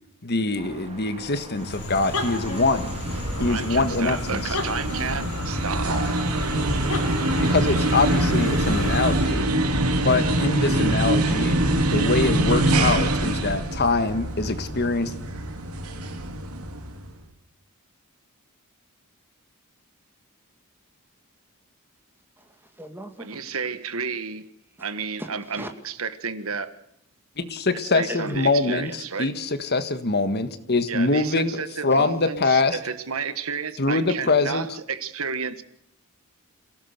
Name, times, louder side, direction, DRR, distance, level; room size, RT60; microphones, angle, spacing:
voice 1, 0.2-2.9 3.4-4.6 7.5-9.5 10.0-15.1 27.4-31.6 31.8-32.8 33.8-34.7, left 3 dB, 50° left, 1.6 m, -24 dB
sound 1, 0.5-8.4, right 2 dB, 30° right, 4.0 m, -44 dB
sound 2, 1.5-9.4, left 2 dB, 80° left, 4.5 m, -33 dB
sound 3, 2.6-17.1, right 1 dB, 85° right, 2.7 m, -24 dB
voice 2, 3.4-6.1 23.2-24.5 24.8-26.7 27.7-29.3 30.9-35.6, right 5 dB, 65° right, 1.5 m, -31 dB
voice 3, 22.4-23.6 25.2-25.7 28.1-28.4 32.0-32.1, right 1 dB, 10° right, 2.4 m, -39 dB
27.0 x 17.5 x 6.7 m
head